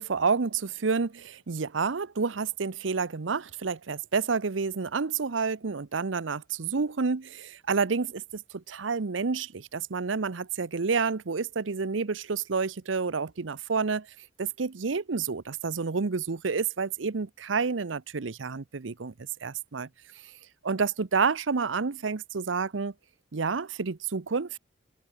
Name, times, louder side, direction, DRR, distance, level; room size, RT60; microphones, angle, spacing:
voice 1, 0.0-14.1 14.4-19.1 19.4-19.9 20.6-22.9 23.3-24.6, right 5 dB, 90° right, 0.8 m, -29 dB
open air
head